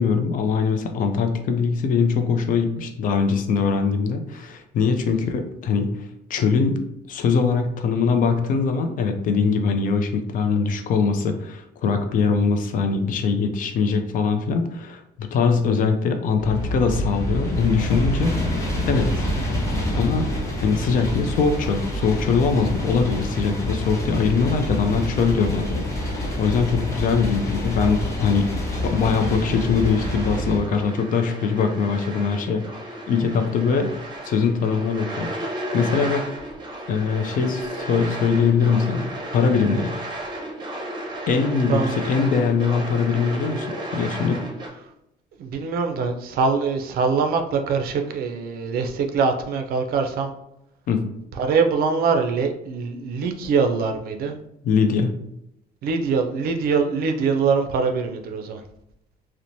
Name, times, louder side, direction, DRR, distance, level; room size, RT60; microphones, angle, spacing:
voice 1, 0.0-6.8 7.1-19.2 19.9-20.3 20.6-28.5 28.8-33.9 34.2-35.3 35.7-36.2 36.9-39.1 39.3-39.9 41.3-43.7 43.9-44.4 50.9-51.0 54.6-55.2, left 5 dB, 55° left, 6 dB, 0.4 m, -22 dB
sound 1, 16.4-30.6, left 1 dB, 20° left, 0.7 m, -27 dB
sound 2, 28.7-44.7, right 1 dB, 25° right, 0.7 m, -34 dB
voice 2, 41.6-42.1 45.4-50.3 51.4-54.3 55.8-58.6, right 5 dB, 65° right, 5 dB, 0.4 m, -23 dB
2.9 x 2.1 x 2.6 m, 0.81 s
cardioid pair, 110°, 17 cm